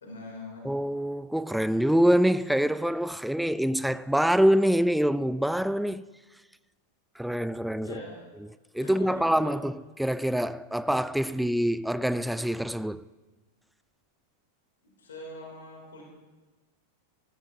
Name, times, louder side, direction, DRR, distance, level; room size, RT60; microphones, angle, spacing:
voice 1, 0.0-0.7 7.8-8.2 8.8-9.6 14.8-16.0, left 2 dB, 65° left, 2.9 m, -43 dB
voice 2, 0.6-6.0 7.2-8.0 8.7-13.0, equal, ahead, 0.3 m, -25 dB
17.5 x 14.5 x 2.7 m
figure-of-eight pair, 90°, 0 cm